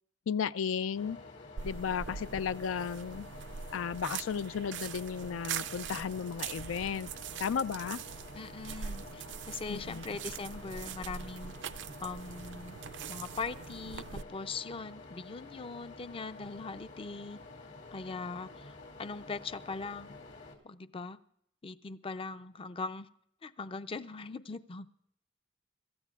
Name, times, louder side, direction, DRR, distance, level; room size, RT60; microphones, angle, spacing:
voice 1, 0.3-1.2 1.6-3.3 3.7-7.1 7.4-8.0 9.7-10.2, left 7 dB, 90° left, 0.4 m, -34 dB
sound 1, 1.0-20.6, left 3 dB, 65° left, 2.4 m, -50 dB
sound 2, 1.6-14.2, right 7 dB, 65° right, 0.4 m, -43 dB
voice 2, 8.4-11.6 12.0-12.8 13.1-17.4 17.9-20.2 20.6-21.2 21.6-23.1 23.4-24.9, left 4 dB, 30° left, 0.4 m, -41 dB
25.5 x 13.5 x 2.4 m
head